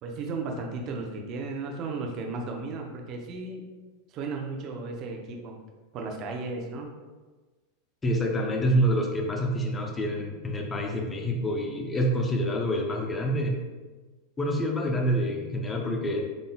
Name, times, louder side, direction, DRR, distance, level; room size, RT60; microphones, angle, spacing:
voice 1, 0.0-3.7 4.1-5.6 5.9-6.9, right 3 dB, 45° right, 1 dB, 0.7 m, -35 dB
voice 2, 8.0-13.6 14.4-16.3, equal, 15° left, 1 dB, 0.6 m, -27 dB
3.9 x 3.7 x 2.3 m, 1.3 s
supercardioid pair, 125°, 0 cm